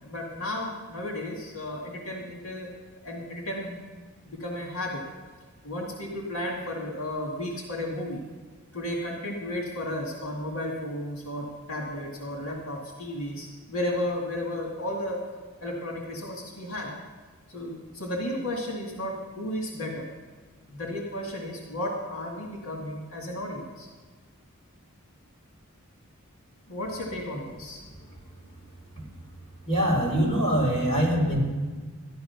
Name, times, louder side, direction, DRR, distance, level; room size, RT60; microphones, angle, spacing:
voice 1, 0.0-2.7 3.0-3.8 4.2-5.0 5.6-8.2 8.7-15.3 15.6-16.9 17.5-20.1 20.7-23.9 26.7-27.8, left 1 dB, 80° left, -1 dB, 2.2 m, -33 dB
voice 2, 29.7-31.4, equal, 30° left, -1 dB, 4.3 m, -23 dB
13.0 x 12.0 x 5.8 m, 1.4 s
head